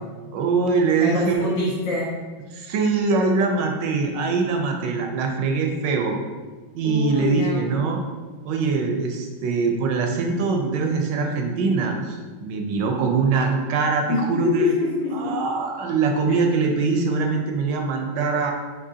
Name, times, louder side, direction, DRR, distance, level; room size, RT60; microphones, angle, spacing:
voice 1, 0.3-1.5 2.5-6.2 6.7-8.0 8.4-14.7 15.1-18.5, right 4 dB, 75° right, 3 dB, 1.2 m, -23 dB
voice 2, 1.0-2.1 6.8-7.6 14.1-15.4 16.3-16.4, left 4 dB, 75° left, -7 dB, 2.1 m, -25 dB
6.0 x 3.0 x 2.7 m, 1.3 s
omnidirectional pair, 2.1 m